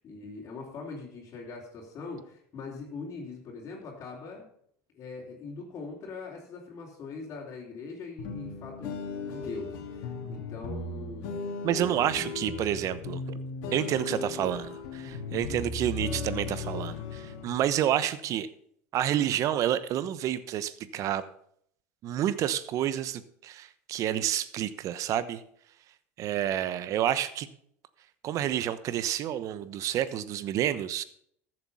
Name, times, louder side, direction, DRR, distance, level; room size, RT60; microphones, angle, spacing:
voice 1, 0.0-4.5 4.9-9.0 9.2-11.3 12.2-12.3 15.3-15.7, left 4 dB, 45° left, -6 dB, 3.9 m, -42 dB
sound 1, 8.2-17.7, left 4 dB, 70° left, 2.6 m, -36 dB
voice 2, 11.6-13.4 13.7-18.5 18.9-21.3 22.0-25.4 26.2-27.5 28.2-31.0, right 11 dB, 50° right, 15 dB, 1.1 m, -29 dB
14.0 x 7.7 x 5.7 m, 0.66 s
supercardioid pair, 95°, 7 cm